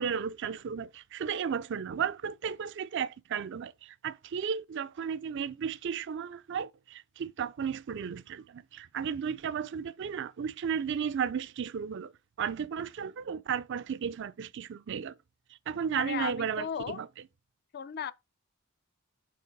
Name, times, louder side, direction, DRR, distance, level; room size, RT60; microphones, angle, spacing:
voice 1, 0.0-12.1 12.4-15.1 15.7-17.1, right 7 dB, 60° right, 0.4 m, -34 dB
voice 2, 15.9-17.0 17.7-18.1, left 8 dB, 50° left, 0.4 m, -36 dB
4.8 x 3.8 x 5.2 m
head